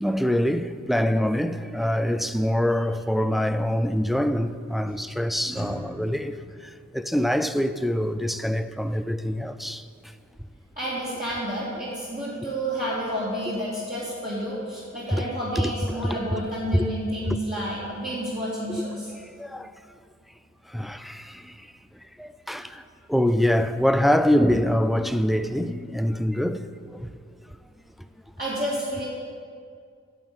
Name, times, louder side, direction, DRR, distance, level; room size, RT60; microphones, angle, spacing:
voice 1, 0.0-9.9 15.1-15.2 15.6-16.4 16.7-16.9 17.3-17.4 18.7-18.8 19.4-19.7 20.7-21.7 22.2-22.8 23.1-27.1, equal, ahead, 0.4 m, -25 dB
voice 2, 10.8-19.1 28.4-29.1, equal, 30° right, 2.5 m, -30 dB
8.9 x 7.6 x 8.5 m
wide cardioid pair, 85°, 30 cm